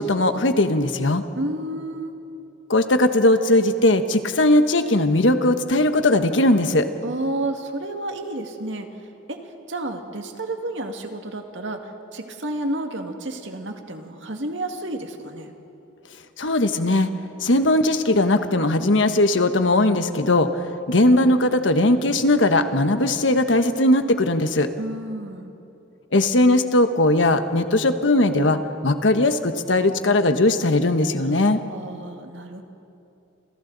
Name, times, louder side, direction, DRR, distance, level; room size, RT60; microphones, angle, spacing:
voice 1, 0.0-1.2 2.7-6.9 16.4-17.1 17.4-24.7 26.1-31.6, left 2 dB, 85° left, 8 dB, 1.2 m, -19 dB
voice 2, 1.4-2.2 7.0-8.9 9.3-9.4 9.7-15.5 24.8-25.5 31.7-32.6, right 1 dB, 80° right, 4 dB, 2.0 m, -31 dB
29.0 x 28.0 x 4.0 m, 2.8 s
head